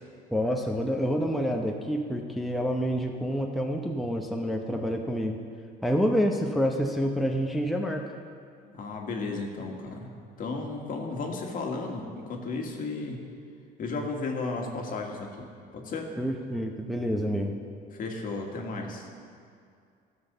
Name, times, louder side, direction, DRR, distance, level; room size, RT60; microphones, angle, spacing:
voice 1, 0.3-5.4 5.8-8.1 16.2-17.5, equal, ahead, 1 dB, 0.8 m, -28 dB
voice 2, 8.6-13.2 13.8-16.1 17.9-19.1, left 3 dB, 55° left, 1 dB, 1.7 m, -34 dB
13.5 x 6.3 x 6.8 m, 2.3 s
cardioid pair, 110°, 17 cm